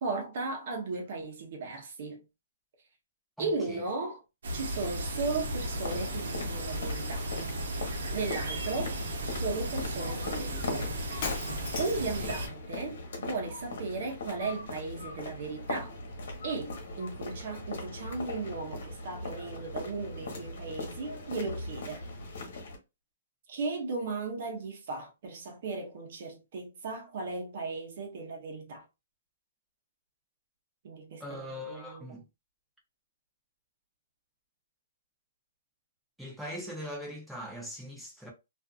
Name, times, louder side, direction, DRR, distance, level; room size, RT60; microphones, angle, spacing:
voice 1, 0.0-2.2 3.4-4.2 4.5-7.3 7.7-8.9 9.2-11.0 11.8-15.9 16.4-22.0 23.5-28.9 30.8-32.2, right 3 dB, 50° right, 0.9 m, -36 dB
voice 2, 3.4-3.8 12.0-12.3 31.2-32.2 36.2-38.3, equal, ahead, 0.7 m, -41 dB
sound 1, 4.4-12.5, right 1 dB, 75° right, 0.8 m, -35 dB
sound 2, 5.7-22.8, left 2 dB, 60° left, 1.1 m, -40 dB
Shatter, 11.2-12.2, left 4 dB, 35° left, 0.8 m, -37 dB
2.5 x 2.4 x 2.4 m
hypercardioid pair, 165°, 0 cm